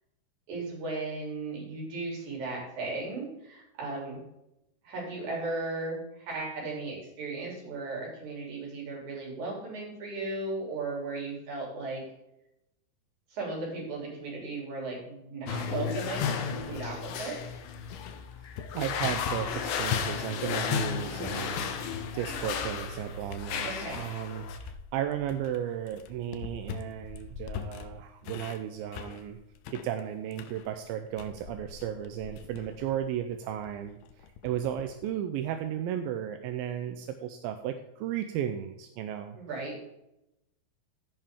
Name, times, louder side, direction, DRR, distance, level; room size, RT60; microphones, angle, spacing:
voice 1, 0.5-4.2 4.8-12.0 13.3-17.4 23.6-24.0 39.3-39.8, right 3 dB, 55° right, -2 dB, 4.3 m, -36 dB
sound 1, 15.5-24.6, left 7 dB, 70° left, 2.3 m, -33 dB
sound 2, 16.6-20.9 21.2-23.0 23.3-24.1 24.6-35.1, left 7 dB, 90° left, 2.5 m, -44 dB
voice 2, 18.4-29.4 29.7-39.4, right 10 dB, 85° right, 7 dB, 2.4 m, -35 dB
15.5 x 5.5 x 3.6 m, 0.87 s
omnidirectional pair, 4.3 m